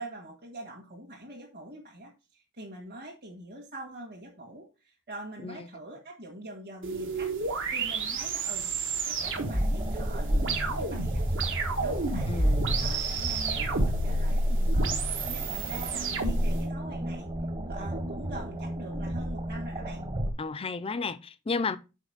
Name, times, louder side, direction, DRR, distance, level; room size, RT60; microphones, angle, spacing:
voice 1, 0.0-8.7 9.0-11.3 11.8-12.5 12.8-17.3 17.7-20.0, right 1 dB, 45° right, 1.9 m, -44 dB
sound 1, 6.8-16.6, right 2 dB, 65° right, 1.5 m, -29 dB
sound 2, 9.2-20.3, right 1 dB, 25° right, 1.1 m, -34 dB
voice 2, 12.3-12.9 20.4-21.8, left 4 dB, 25° left, 0.5 m, -33 dB
6.4 x 5.0 x 5.0 m
head